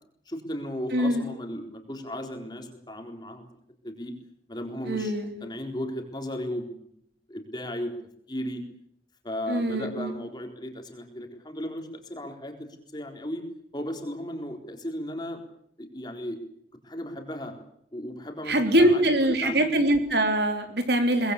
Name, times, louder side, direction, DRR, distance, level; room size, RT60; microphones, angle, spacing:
voice 1, 0.3-3.4 3.8-4.1 4.5-5.1 5.4-6.9 7.3-7.9 8.3-8.6 9.2-13.4 13.7-15.4 15.8-16.4 16.8-17.5 17.9-19.8, left 1 dB, 25° left, 4 dB, 3.9 m, -35 dB
voice 2, 0.9-1.3 4.8-5.5 9.5-10.1 18.5-21.3, right 1 dB, 65° right, 6 dB, 3.5 m, -23 dB
23.5 x 20.5 x 8.4 m, 0.70 s
head